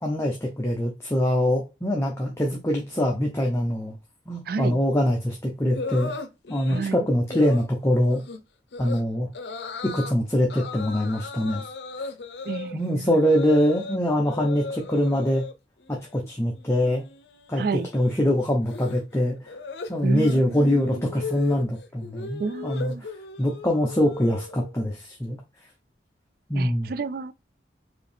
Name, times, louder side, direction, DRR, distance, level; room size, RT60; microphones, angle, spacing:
voice 1, 0.0-4.0 4.3-6.1 6.5-8.2 8.8-9.3 9.9-11.6 12.7-15.4 15.9-17.0 17.5-19.5 19.9-22.9 23.4-25.4 26.5-26.9, equal, 15° left, 0.7 m, -23 dB
voice 2, 4.5-4.8 6.7-7.1 12.5-13.1 17.6-17.9 20.0-21.0 22.4-23.0 26.5-27.3, right 4 dB, 55° right, 0.3 m, -30 dB
sound 1, 5.7-6.9 7.3-7.7 8.1-8.4 8.7-9.0 9.3-10.1 10.5-14.0 14.2-15.5 15.9-16.3 16.5-24.7, left 3 dB, 75° left, 0.6 m, -37 dB
4.8 x 2.8 x 3.4 m
head